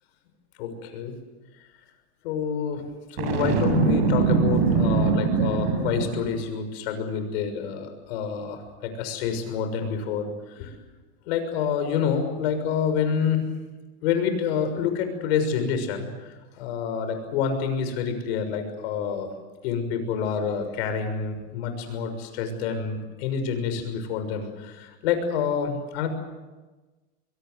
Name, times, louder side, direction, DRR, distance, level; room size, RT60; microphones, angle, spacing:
voice 1, 0.6-1.1 2.2-2.8 3.1-10.8 11.3-13.4 14.0-19.3 19.6-26.1, left 7 dB, 65° left, 7 dB, 6.5 m, -28 dB
Boom, 3.2-6.4, right 5 dB, 60° right, 7.9 m, -22 dB
23.5 x 23.0 x 7.9 m, 1.2 s
supercardioid pair, 145°, 34 cm